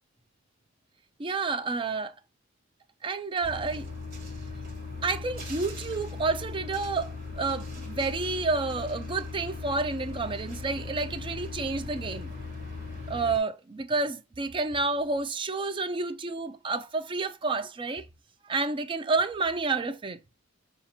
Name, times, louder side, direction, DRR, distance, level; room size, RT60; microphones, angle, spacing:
voice 1, 1.2-2.1 3.0-3.9 5.0-12.3 13.1-18.1 18.4-20.2, right 3 dB, 25° right, 0.4 m, -30 dB
sound 1, 3.4-13.4, left 3 dB, 45° right, 1.5 m, -38 dB
5.4 x 2.4 x 2.9 m
head